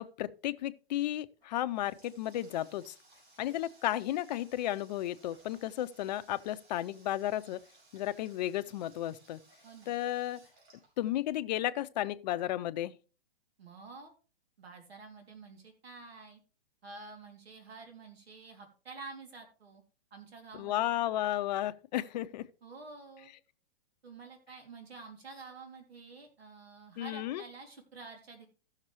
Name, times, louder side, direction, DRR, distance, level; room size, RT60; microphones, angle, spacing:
voice 1, 0.0-2.9 3.4-7.6 7.9-9.4 9.9-10.4 11.0-12.9 20.5-22.4 27.0-27.4, left 13 dB, 45° left, 0.6 m, -33 dB
Water tap faucet, 1.4-11.6, right 2 dB, 50° right, 5.9 m, -62 dB
voice 2, 13.6-14.1 14.6-16.4 16.8-19.8 20.1-20.8 22.6-23.3 24.0-28.5, right 4 dB, 80° right, 2.8 m, -49 dB
15.5 x 6.5 x 3.1 m
hypercardioid pair, 135°, 31 cm